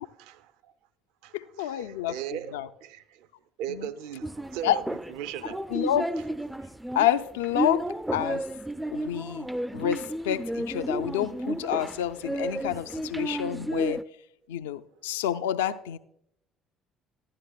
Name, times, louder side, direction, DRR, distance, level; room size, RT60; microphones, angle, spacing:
voice 1, 0.2-0.7 1.2-3.3 3.6-4.8 5.1-5.8, right 10 dB, 65° right, 0.5 m, -38 dB
voice 2, 1.3-2.7 3.7-3.9 4.6-4.8 5.4-6.1 6.9-7.9 8.1-8.4 8.9-9.5 9.7-14.0 14.5-16.0, left 11 dB, 75° left, 0.3 m, -29 dB
sound 1, 4.2-14.0, right 1 dB, 5° right, 0.3 m, -32 dB
11.5 x 11.0 x 2.3 m
figure-of-eight pair, 55°, 0 cm